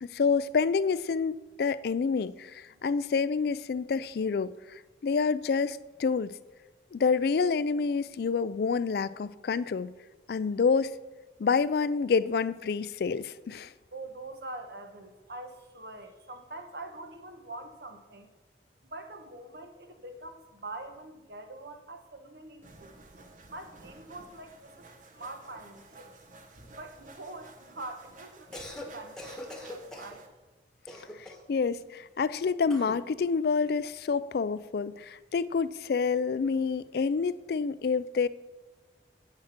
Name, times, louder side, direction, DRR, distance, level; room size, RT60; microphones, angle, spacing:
voice 1, 0.0-4.5 5.0-6.3 6.9-9.9 10.3-10.9 11.4-13.7 31.2-38.3, left 5 dB, 60° left, 0.3 m, -28 dB
voice 2, 13.9-18.3 18.8-23.0 23.5-24.8 25.1-26.2 26.8-30.3, right 2 dB, 65° right, 1.2 m, -44 dB
sound 1, 22.6-30.3, right 2 dB, 45° right, 1.1 m, -53 dB
Cough, 28.4-28.9 29.2-30.2 30.9-31.5 32.7-33.0, left 1 dB, 5° left, 1.3 m, -42 dB
8.6 x 6.5 x 5.9 m
head